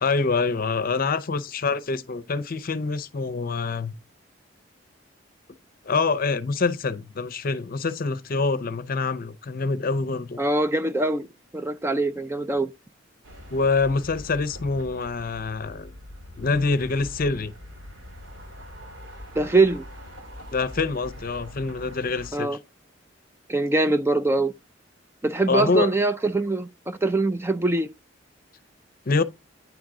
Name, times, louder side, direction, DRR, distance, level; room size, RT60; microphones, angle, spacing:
voice 1, 0.0-3.9 5.9-10.4 13.5-15.9 16.4-17.5 20.5-22.5 25.5-25.9 29.1-29.2, left 4 dB, 50° left, 0.6 m, -25 dB
voice 2, 10.4-11.3 11.5-12.7 19.4-19.9 22.3-22.6 23.5-24.5 25.2-27.9, right 2 dB, 15° right, 0.4 m, -23 dB
sound 1, 13.2-22.3, left 1 dB, 85° right, 2.7 m, -42 dB
9.5 x 3.8 x 4.7 m
head